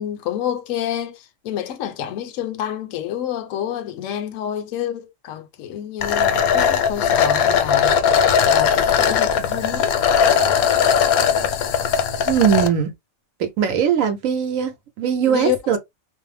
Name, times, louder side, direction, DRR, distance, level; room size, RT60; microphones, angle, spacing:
voice 1, 0.0-8.0 8.4-10.0 15.3-15.8, left 10 dB, 70° left, 0.9 m, -28 dB
sound 1, 6.0-12.7, left 7 dB, 90° left, 1.1 m, -18 dB
voice 2, 12.3-12.9 13.4-15.8, right 8 dB, 70° right, 1.1 m, -20 dB
2.6 x 2.0 x 3.1 m
omnidirectional pair, 1.5 m